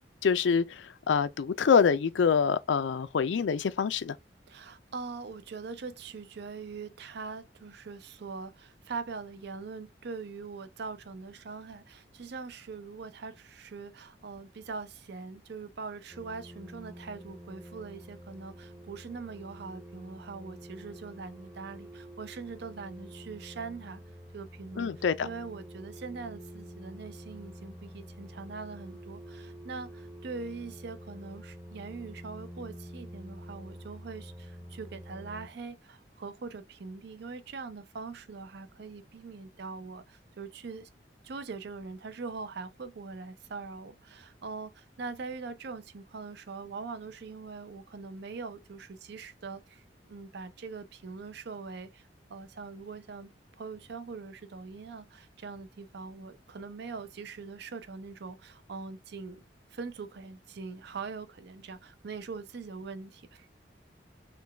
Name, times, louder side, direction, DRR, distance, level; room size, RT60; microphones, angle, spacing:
voice 1, 0.2-4.1 24.8-25.3, left 6 dB, 90° left, 0.4 m, -26 dB
voice 2, 4.5-24.0 24.3-24.9 25.2-40.9 41.2-53.3 53.6-59.4 59.7-63.5, right 4 dB, 65° right, 0.5 m, -42 dB
sound 1, 16.1-35.5, equal, 5° right, 0.7 m, -47 dB
3.8 x 2.2 x 3.3 m
head